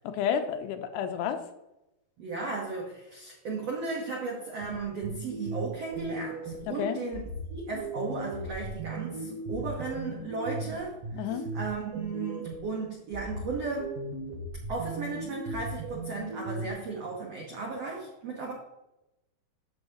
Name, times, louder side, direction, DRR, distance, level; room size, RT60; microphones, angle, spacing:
voice 1, 0.0-1.4 6.8-7.0 11.2-11.5, left 8 dB, 85° left, 8 dB, 2.7 m, -30 dB
voice 2, 2.2-14.0 14.7-18.5, right 4 dB, 85° right, -2 dB, 1.4 m, -35 dB
sound 1, 4.6-6.7 7.1-12.7 13.1-16.7, right 2 dB, 60° right, 3.7 m, -37 dB
13.0 x 6.4 x 2.9 m, 0.94 s
omnidirectional pair, 5.0 m